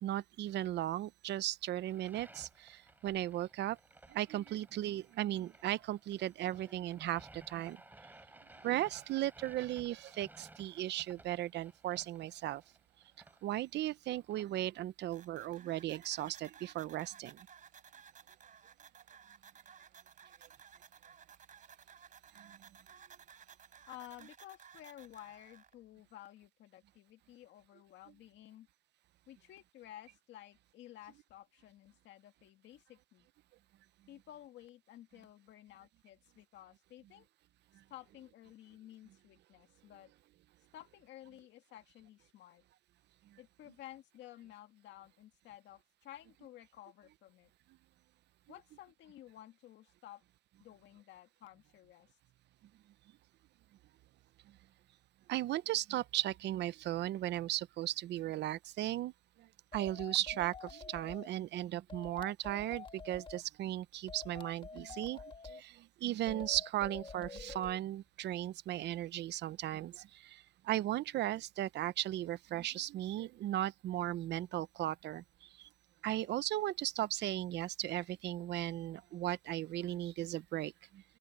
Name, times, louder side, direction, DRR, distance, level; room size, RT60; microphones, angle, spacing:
voice 1, 0.0-3.8 4.1-7.8 8.6-12.6 13.4-17.5 22.4-22.6 37.7-37.8 55.3-59.1 59.4-75.7 76.0-81.0, right 14 dB, 75° right, 0.6 m, -36 dB
sound 1, 1.8-14.4, right 2 dB, 10° right, 3.6 m, -59 dB
sound 2, 15.1-25.7, right 7 dB, 45° right, 3.6 m, -58 dB
voice 2, 23.9-28.7 29.3-33.3 34.1-37.3 37.9-40.1 40.7-42.6 43.4-47.5 48.5-50.2 50.6-52.2, left 13 dB, 85° left, 2.1 m, -54 dB
sound 3, 59.7-61.3 61.9-63.4 64.1-65.6 66.3-67.8, left 5 dB, 30° left, 1.3 m, -48 dB
cardioid pair, 135°, 18 cm